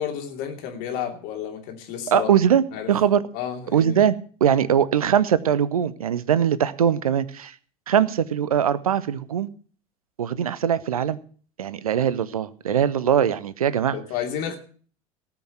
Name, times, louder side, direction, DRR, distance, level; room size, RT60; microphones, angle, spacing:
voice 1, 0.0-2.3 2.7-2.9 3.3-4.0 13.9-14.6, left 9 dB, 55° left, 3 dB, 2.9 m, -31 dB
voice 2, 2.1-3.2 3.7-4.2 4.4-7.5 7.9-9.5 10.2-11.2 11.6-14.0, right 9 dB, 75° right, 18 dB, 0.7 m, -21 dB
18.0 x 6.0 x 7.4 m, 0.44 s
figure-of-eight pair, 70°, 19 cm